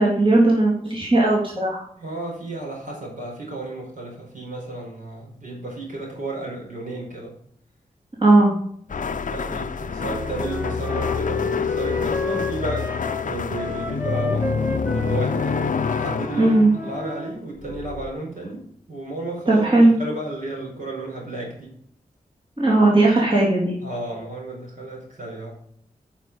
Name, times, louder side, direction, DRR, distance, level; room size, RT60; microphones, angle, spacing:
voice 1, 0.0-1.8 8.2-8.5 16.4-16.7 19.5-19.9 22.6-23.8, right 2 dB, 35° right, -4 dB, 3.4 m, -17 dB
voice 2, 2.0-7.3 8.9-16.6 16.8-21.7 23.8-25.5, right 2 dB, 60° right, -1 dB, 4.7 m, -33 dB
sound 1, 8.9-17.2 17.6-18.1, left 6 dB, 55° left, 0.6 m, -27 dB
Wind instrument woodwind instrument, 9.9-17.4, equal, 15° right, 1.5 m, -33 dB
9.0 x 5.8 x 5.5 m, 0.65 s
cardioid pair, 40°, 16 cm